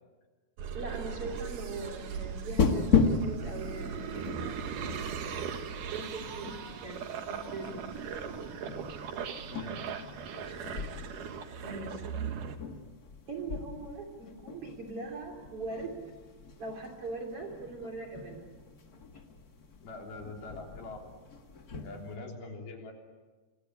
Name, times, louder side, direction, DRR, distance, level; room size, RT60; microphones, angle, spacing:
sound 1, 0.6-12.6, right 7 dB, 60° right, 2.8 m, -39 dB
voice 1, 0.7-2.9 3.2-4.7 5.9-8.0 11.6-12.0 13.3-16.0 16.6-18.5, right 3 dB, 35° right, 2 dB, 3.8 m, -41 dB
sound 2, 1.0-11.4, right 3 dB, 75° right, 8.2 m, -52 dB
sound 3, 2.5-22.2, left 5 dB, 45° left, 1.2 m, -36 dB
voice 2, 9.5-9.9 10.2-10.8 17.8-17.9 19.8-21.2 21.8-22.9, left 2 dB, 70° left, 2 dB, 5.3 m, -44 dB
28.0 x 21.5 x 9.8 m, 1.3 s
omnidirectional pair, 4.7 m